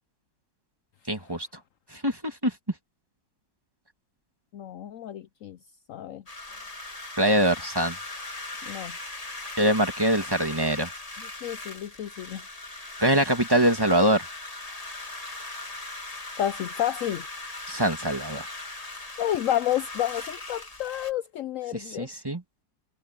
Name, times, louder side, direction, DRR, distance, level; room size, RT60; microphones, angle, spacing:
voice 1, 1.1-1.5 1.9-2.5 7.2-8.0 9.6-10.9 13.0-14.2 17.7-18.5 21.7-22.4, right 1 dB, 15° right, 1.8 m, -23 dB
voice 2, 4.5-5.6 5.9-6.2 8.6-9.0 11.4-12.4 16.4-17.3 19.2-22.1, left 12 dB, 80° left, 0.7 m, -30 dB
sound 1, 6.3-21.1, left 2 dB, 20° left, 1.9 m, -39 dB
omnidirectional pair, 2.0 m